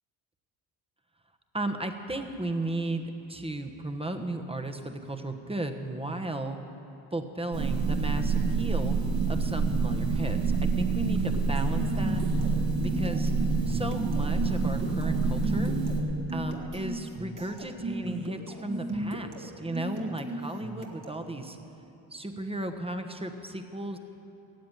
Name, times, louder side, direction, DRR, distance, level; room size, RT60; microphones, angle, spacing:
voice 1, 1.5-6.6 7.1-9.0 9.3-12.5 12.8-13.3 13.7-15.8 16.3-21.6 22.1-24.0, right 2 dB, 10° right, 6 dB, 1.2 m, -35 dB
sound 1, 7.5-16.0, right 4 dB, 75° right, 2.0 m, -27 dB
sound 2, 11.0-21.3, right 1 dB, 40° right, 1.9 m, -37 dB
16.0 x 7.7 x 9.1 m, 2.9 s
supercardioid pair, 65°, 46 cm